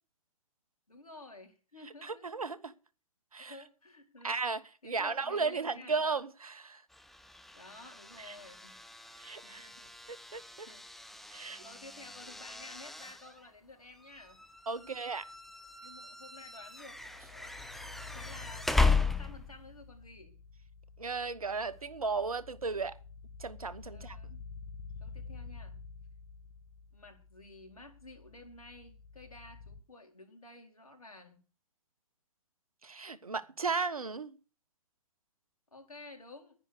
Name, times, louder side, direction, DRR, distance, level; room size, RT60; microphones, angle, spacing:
voice 1, 0.9-2.4 3.4-4.4 4.8-6.0 7.5-8.8 9.4-9.9 10.6-10.9 11.6-14.4 14.8-15.0 15.8-17.5 18.1-20.4 23.9-24.4 25.0-25.8 26.9-31.4 35.7-36.6, left 2 dB, 85° left, 4.1 m, -53 dB
voice 2, 2.0-2.7 3.3-3.5 4.2-6.8 8.2-8.3 9.2-9.7 10.1-10.7 11.3-11.6 14.7-15.2 21.0-23.0 23.4-24.2 32.8-34.4, right 4 dB, 80° right, 1.2 m, -35 dB
sound 1, 6.9-19.7, left 3 dB, ahead, 0.6 m, -36 dB
sound 2, 16.9-29.8, left 5 dB, 40° left, 1.5 m, -50 dB
10.5 x 10.0 x 6.6 m
figure-of-eight pair, 120°, 18 cm